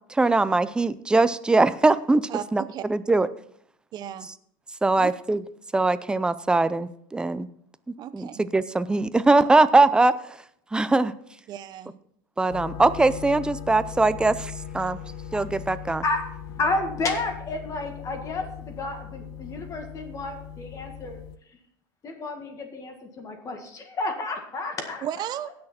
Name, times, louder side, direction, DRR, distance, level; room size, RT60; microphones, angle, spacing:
voice 1, 0.1-2.2 2.5-2.6 2.9-3.3 4.8-5.4 5.7-7.5 8.1-10.1 10.7-11.1 12.4-15.0 15.3-16.0, right 2 dB, 10° right, 14 dB, 0.5 m, -21 dB
voice 2, 2.3-2.8 3.9-4.3 4.9-5.1 8.0-8.4 11.5-12.0 25.0-25.5, right 11 dB, 40° right, 13 dB, 0.8 m, -34 dB
sound 1, 12.5-21.4, left 8 dB, 60° left, 1.0 m, -39 dB
voice 3, 16.6-21.2 22.0-25.0, left 2 dB, 30° left, 5 dB, 1.8 m, -31 dB
17.0 x 6.6 x 4.3 m, 0.69 s
supercardioid pair, 130°, 11 cm